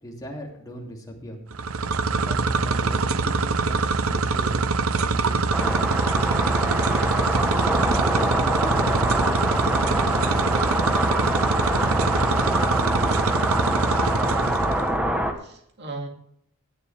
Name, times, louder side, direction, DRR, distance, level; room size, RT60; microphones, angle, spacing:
voice 1, 0.0-1.4 2.2-4.7 4.9-6.8 7.2-7.7 8.2-10.5, equal, 15° left, -1 dB, 2.7 m, -40 dB
sound 1, 1.5-14.9, right 4 dB, 65° right, 0.7 m, -24 dB
sound 2, 5.5-15.3, equal, 5° right, 1.0 m, -25 dB
voice 2, 14.1-15.0 15.4-16.1, right 2 dB, 50° right, 2 dB, 2.3 m, -38 dB
17.0 x 9.9 x 3.4 m, 0.70 s
head